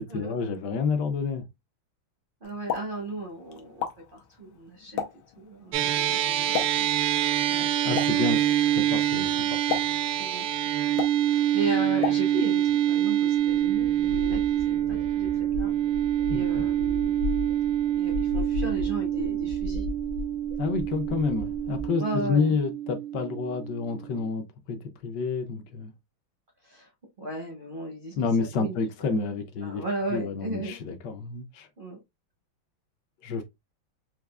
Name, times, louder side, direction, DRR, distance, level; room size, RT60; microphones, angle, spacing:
voice 1, 0.0-1.4 7.8-9.8 16.3-16.6 20.6-25.9 28.2-29.8 30.1-31.7 33.2-33.4, left 5 dB, 70° left, 1.1 m, -29 dB
Explosion, 2.4-12.7, left 8 dB, 90° left, 1.5 m, -37 dB
voice 2, 2.4-5.0 5.4-7.7 8.1-8.5 9.1-9.5 10.2-10.4 11.2-12.6 12.9-15.7 16.3-17.2 18.0-19.8 22.0-22.5 26.6-26.9 27.2-29.2 29.6-30.8 31.8-32.0, right 2 dB, 60° right, 0.5 m, -36 dB
sound 1, 5.7-24.3, right 12 dB, 85° right, 1.4 m, -26 dB
sound 2, 13.0-13.1 13.4-21.9, left 4 dB, 50° left, 0.7 m, -36 dB
4.6 x 2.3 x 2.3 m
omnidirectional pair, 2.2 m